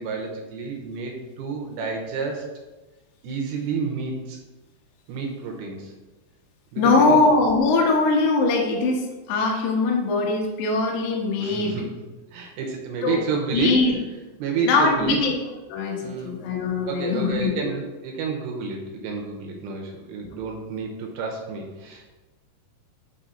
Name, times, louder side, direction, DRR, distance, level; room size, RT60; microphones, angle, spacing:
voice 1, 0.0-2.5 3.2-4.4 5.1-5.9 6.7-7.2 11.4-11.9 12.3-13.8 14.4-15.2 16.0-16.3 16.9-22.1, right 5 dB, 80° right, 2 dB, 2.6 m, -30 dB
voice 2, 6.8-11.7 13.0-13.1 13.5-13.9 14.7-15.3 15.7-17.7, left 3 dB, 80° left, 0 dB, 1.7 m, -21 dB
6.1 x 3.9 x 5.6 m, 1.2 s
omnidirectional pair, 4.9 m